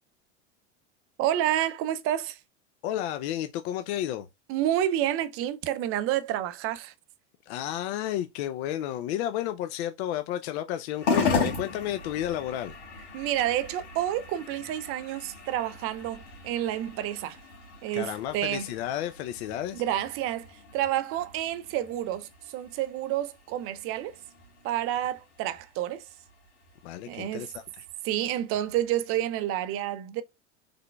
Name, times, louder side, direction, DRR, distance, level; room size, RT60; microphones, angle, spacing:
voice 1, 1.2-2.4 4.5-6.9 13.1-17.4 17.8-18.7 19.7-20.5 20.7-24.1 24.6-26.0 27.1-27.5 28.0-30.2, right 12 dB, 40° right, 0.4 m, -29 dB
voice 2, 2.8-4.3 7.5-12.7 17.9-19.8 26.8-27.8, left 12 dB, 65° left, 0.5 m, -32 dB
sound 1, 11.0-29.6, left 4 dB, 90° left, 1.7 m, -37 dB
3.7 x 3.3 x 2.2 m
hypercardioid pair, 95°, 35 cm